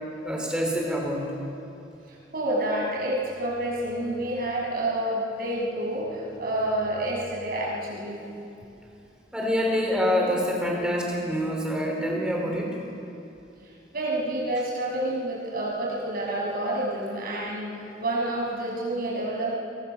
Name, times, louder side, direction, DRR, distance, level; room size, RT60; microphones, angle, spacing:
voice 1, 0.2-1.3 9.3-12.7, equal, 5° right, -1 dB, 4.3 m, -26 dB
voice 2, 2.3-8.2 13.9-17.7 18.0-19.6, right 1 dB, 55° right, -2 dB, 6.3 m, -28 dB
22.5 x 20.5 x 6.8 m, 2.7 s
head